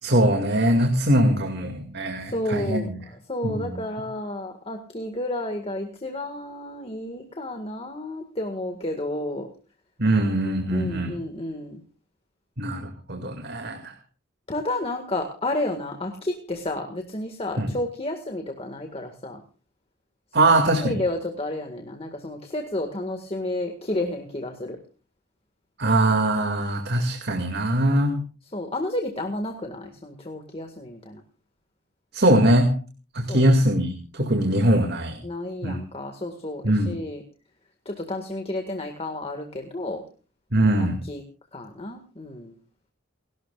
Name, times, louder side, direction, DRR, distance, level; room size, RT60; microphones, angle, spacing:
voice 1, 0.0-3.0 3.4-3.8 10.0-11.1 12.6-13.9 17.6-17.7 20.3-21.0 25.8-28.2 32.1-32.7 33.1-35.2 35.6-35.8 36.6-36.9 40.5-41.0, right 1 dB, 50° right, 4 dB, 2.3 m, -22 dB
voice 2, 2.3-2.9 3.3-9.5 10.7-11.8 14.5-19.4 20.4-24.8 28.5-31.2 33.3-33.5 35.2-37.2 37.9-40.0 40.8-41.2 41.5-42.5, left 1 dB, 30° left, 4 dB, 1.8 m, -31 dB
29.5 x 12.5 x 2.5 m, 0.35 s
head